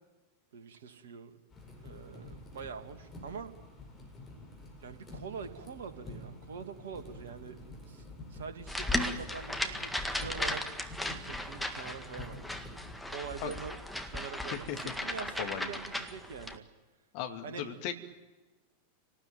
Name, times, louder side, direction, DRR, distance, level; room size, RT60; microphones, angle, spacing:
voice 1, 0.5-1.4 1.8-3.5 4.8-7.6 7.9-10.6 11.1-12.4 13.1-13.8 14.1-16.7 17.4-17.6, right 6 dB, 60° right, 8 dB, 2.2 m, -44 dB
sound 1, 1.5-12.9, left 2 dB, 20° left, 7.9 m, -49 dB
sound 2, 8.7-16.6, left 1 dB, ahead, 1.9 m, -36 dB
voice 2, 15.4-15.7 17.1-17.9, left 10 dB, 45° left, 5 dB, 2.4 m, -37 dB
29.0 x 19.0 x 9.3 m, 1.2 s
figure-of-eight pair, 90°, 0 cm